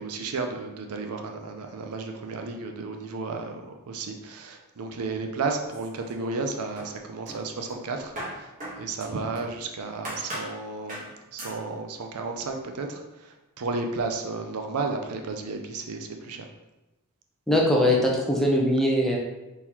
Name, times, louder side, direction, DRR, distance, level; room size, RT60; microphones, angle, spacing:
voice 1, 0.0-3.6 3.9-8.5 8.8-16.5, right 3 dB, 80° right, 4 dB, 0.5 m, -33 dB
sound 1, 5.6-6.4 6.8-9.6 10.0-10.5 10.9-11.1 11.4-11.6, right 1 dB, 35° right, 1.4 m, -39 dB
voice 2, 17.5-19.2, left 1 dB, ahead, -2 dB, 0.6 m, -21 dB
4.2 x 3.8 x 3.0 m, 1.0 s
head